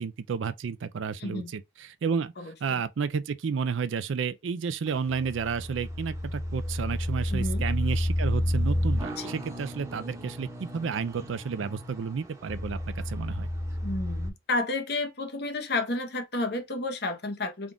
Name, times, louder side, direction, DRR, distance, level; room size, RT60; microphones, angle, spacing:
voice 1, 0.0-2.3 2.6-13.5, right 6 dB, 80° right, 0.4 m, -31 dB
voice 2, 1.2-1.5 2.4-2.8 7.3-7.6 9.1-9.3 13.8-17.7, left 2 dB, 55° left, 0.8 m, -31 dB
sound 1, 4.9-14.3, left 1 dB, 15° right, 0.8 m, -31 dB
3.6 x 2.3 x 3.6 m
head